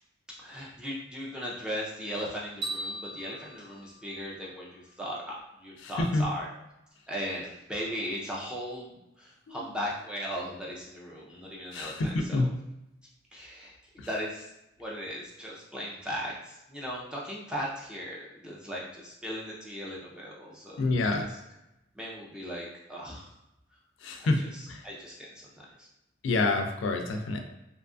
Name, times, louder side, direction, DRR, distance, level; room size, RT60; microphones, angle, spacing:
voice 1, 0.3-6.5 7.1-12.5 13.3-14.5 14.8-20.9 21.2-21.4 21.9-23.3 24.2-25.9, equal, 5° right, -5 dB, 0.4 m, -38 dB
sound 1, 2.6-4.9, right 2 dB, 70° right, 1.3 m, -39 dB
voice 2, 5.8-6.3 9.5-9.6 11.7-12.5 14.0-14.1 20.8-21.3 24.0-24.4 24.7-24.9 26.2-27.4, left 2 dB, 80° left, 4 dB, 0.4 m, -27 dB
2.6 x 2.3 x 2.4 m, 0.89 s
head